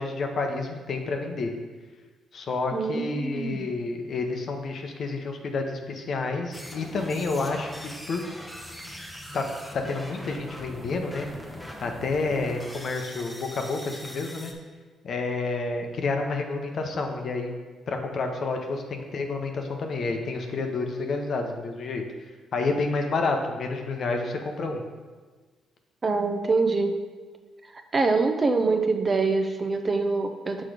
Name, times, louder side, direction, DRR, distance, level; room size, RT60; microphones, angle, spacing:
voice 1, 0.0-1.5 2.3-7.7 8.1-8.3 9.3-9.5 9.7-11.3 11.8-14.5 15.0-17.5 17.9-22.0 22.5-24.8, left 3 dB, 55° left, 4 dB, 0.8 m, -29 dB
voice 2, 2.7-3.7 26.0-27.0 27.9-30.6, right 3 dB, 30° right, 6 dB, 0.6 m, -24 dB
sound 1, 6.5-14.5, equal, 5° left, 0.8 m, -41 dB
6.2 x 3.7 x 4.8 m, 1.4 s
cardioid pair, 90°, 0 cm